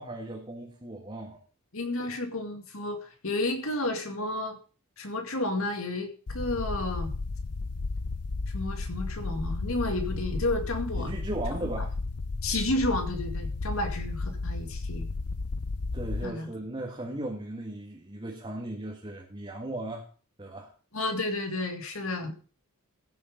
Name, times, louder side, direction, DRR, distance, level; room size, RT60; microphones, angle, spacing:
voice 1, 0.0-1.4 11.0-11.9 15.9-20.1 20.4-20.7, right 1 dB, 25° right, -2 dB, 1.9 m, -37 dB
voice 2, 1.7-4.6 5.0-7.1 8.5-11.1 11.8-11.9 12.4-15.1 16.2-16.5 20.9-22.3, left 2 dB, 65° left, 6 dB, 2.2 m, -31 dB
sound 1, 6.3-16.3, left 3 dB, 85° left, 0.7 m, -33 dB
15.0 x 8.6 x 5.3 m, 0.38 s
head